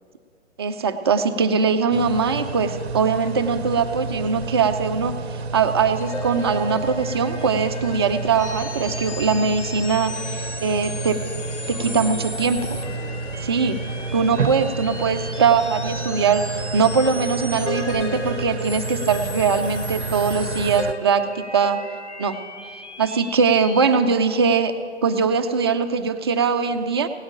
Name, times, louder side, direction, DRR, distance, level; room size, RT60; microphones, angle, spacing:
voice 1, 0.6-11.2 11.7-12.7 13.4-13.8 14.1-21.8 22.2-22.4 23.0-24.8 25.0-27.1, right 5 dB, 20° right, 7 dB, 0.5 m, -21 dB
sound 1, 1.9-20.9, right 4 dB, 60° right, 0.7 m, -31 dB
sound 2, 6.0-23.8, left 2 dB, 75° left, 1.5 m, -35 dB
voice 2, 11.6-14.6, left 3 dB, 10° left, -9 dB, 2.8 m, -43 dB
17.0 x 8.6 x 8.9 m, 2.3 s
figure-of-eight pair, 130°, 35 cm